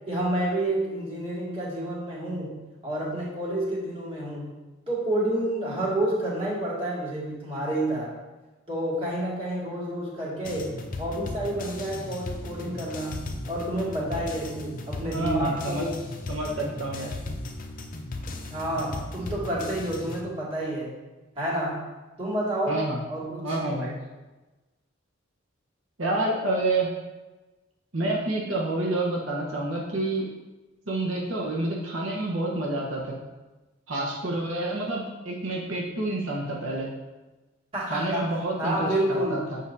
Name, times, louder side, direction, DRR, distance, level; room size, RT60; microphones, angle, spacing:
voice 1, 0.1-2.6 2.8-4.5 4.9-8.1 8.7-16.0 18.5-20.9 21.4-21.9 22.2-22.8 23.1-23.6 37.7-38.3 38.6-39.4, right 1 dB, 30° right, -7 dB, 2.3 m, -29 dB
sound 1, 10.4-20.2, left 2 dB, 45° left, 0.6 m, -36 dB
voice 2, 15.1-15.9 16.3-17.1 22.7-23.0 23.4-23.9 26.0-26.9 27.9-30.3 30.9-33.1 33.9-36.9 37.9-39.6, right 2 dB, 85° right, -3 dB, 1.1 m, -28 dB
7.5 x 5.7 x 2.7 m, 1.1 s
head